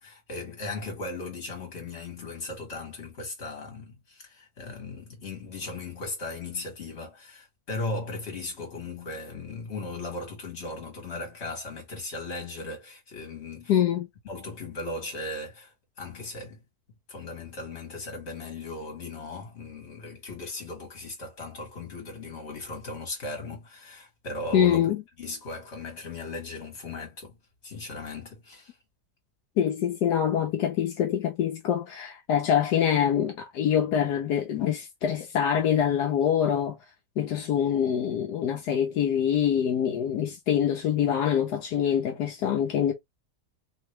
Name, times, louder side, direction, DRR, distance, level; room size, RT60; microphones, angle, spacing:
voice 1, 0.0-13.7 14.2-16.6 17.1-24.9 25.2-27.4 27.6-28.7, left 3 dB, 40° left, 2.1 m, -37 dB
voice 2, 13.7-14.1 24.5-25.0 29.6-36.8 37.2-42.9, left 9 dB, 75° left, 1.3 m, -25 dB
3.8 x 2.9 x 3.1 m
omnidirectional pair, 1.8 m